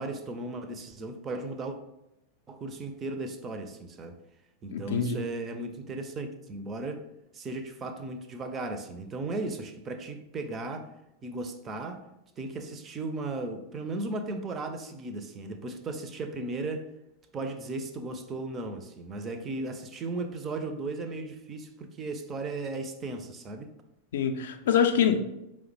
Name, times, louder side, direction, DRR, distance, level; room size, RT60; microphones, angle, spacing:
voice 1, 0.0-1.8 2.5-4.2 4.6-7.1 7.3-10.9 11.2-12.1 12.4-16.9 17.3-23.7, right 2 dB, 25° right, 0.4 m, -36 dB
voice 2, 4.7-5.2 24.1-25.2, left 8 dB, 60° left, 0.3 m, -25 dB
4.7 x 2.1 x 3.1 m
figure-of-eight pair, 90°, 0 cm